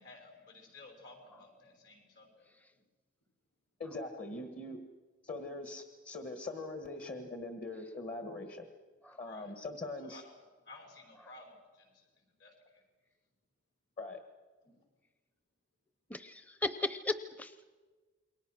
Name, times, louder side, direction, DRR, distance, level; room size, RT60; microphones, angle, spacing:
voice 1, 0.0-2.5 2.7-2.8 9.1-9.5 10.1-10.2 10.6-12.8 14.6-14.8, left 2 dB, 65° left, 2 dB, 6.2 m, -55 dB
voice 2, 3.8-4.8 5.2-8.7 9.2-10.2 14.0-14.2, left 2 dB, 40° left, 5 dB, 1.6 m, -42 dB
voice 3, 16.1-17.7, left 2 dB, 10° left, 11 dB, 0.7 m, -36 dB
28.5 x 23.0 x 6.4 m, 1.3 s
head